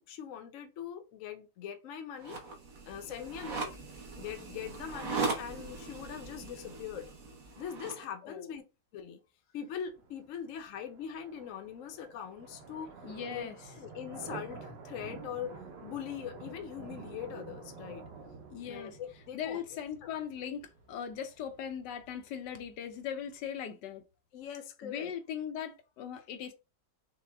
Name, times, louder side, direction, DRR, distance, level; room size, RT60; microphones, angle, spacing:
voice 1, 0.0-2.4 2.9-3.8 4.2-7.1 7.6-8.6 8.9-9.2 9.5-12.9 13.3-13.5 13.8-15.6 15.8-18.0 18.6-19.6 20.0-20.1 24.3-25.1, left 8 dB, 60° left, 0.9 m, -42 dB
sound 1, 2.2-8.0, right 4 dB, 55° right, 1.4 m, -39 dB
sound 2, 9.7-23.6, right 5 dB, 85° right, 1.4 m, -49 dB
voice 2, 13.0-13.6 18.5-19.0 19.3-24.0 24.8-26.5, left 8 dB, 80° left, 1.2 m, -39 dB
5.8 x 2.2 x 3.4 m
omnidirectional pair, 1.8 m